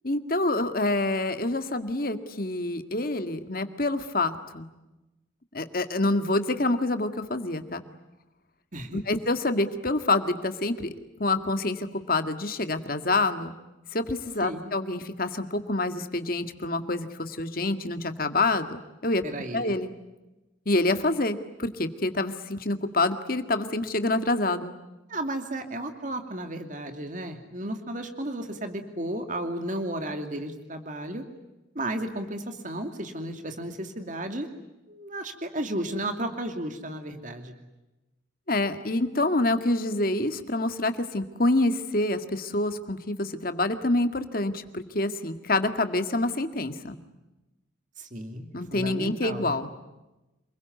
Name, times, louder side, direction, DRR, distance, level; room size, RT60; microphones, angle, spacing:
voice 1, 0.0-4.7 5.5-7.8 8.9-10.9 11.2-13.5 13.9-18.7 19.0-19.2 19.5-19.9 20.7-24.7 38.5-47.0 48.5-49.7, left 2 dB, 45° left, 8 dB, 1.9 m, -27 dB
voice 2, 14.4-14.7 19.2-19.7 25.1-31.2 31.7-34.5 34.9-37.5 48.0-49.5, right 1 dB, 40° right, 6 dB, 2.6 m, -33 dB
28.5 x 22.0 x 9.4 m, 1.0 s
head